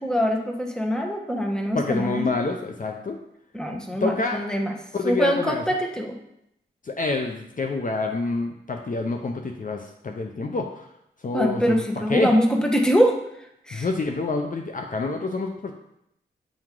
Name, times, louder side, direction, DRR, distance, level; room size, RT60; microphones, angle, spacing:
voice 1, 0.0-2.2 3.5-4.7 5.0-6.1 11.3-13.2 13.7-13.9, equal, 5° left, 2 dB, 1.1 m, -23 dB
voice 2, 1.7-3.2 4.0-4.4 4.9-5.6 6.8-10.8 11.2-11.8 12.1-12.3 13.7-15.7, left 3 dB, 40° left, 3 dB, 0.6 m, -27 dB
8.6 x 3.0 x 3.7 m, 0.78 s
cardioid pair, 45°, 20 cm